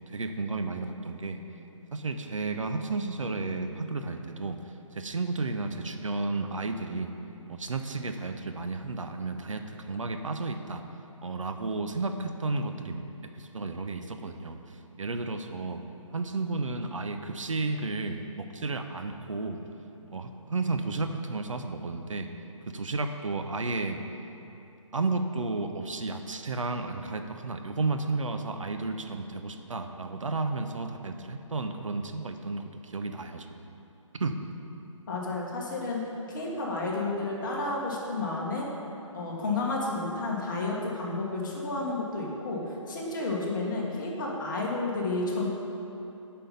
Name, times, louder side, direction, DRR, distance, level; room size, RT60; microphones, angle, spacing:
voice 1, 0.0-1.4 1.9-4.6 4.9-7.1 7.5-10.8 11.2-13.0 13.3-14.6 15.0-15.8 16.1-19.6 20.1-22.3 22.7-24.0 24.9-33.7 34.1-34.3, right 3 dB, 70° right, 6 dB, 0.7 m, -32 dB
voice 2, 35.1-38.7 39.1-45.5, left 2 dB, 35° left, -3 dB, 1.5 m, -31 dB
8.6 x 5.5 x 5.5 m, 2.9 s
figure-of-eight pair, 140°, 17 cm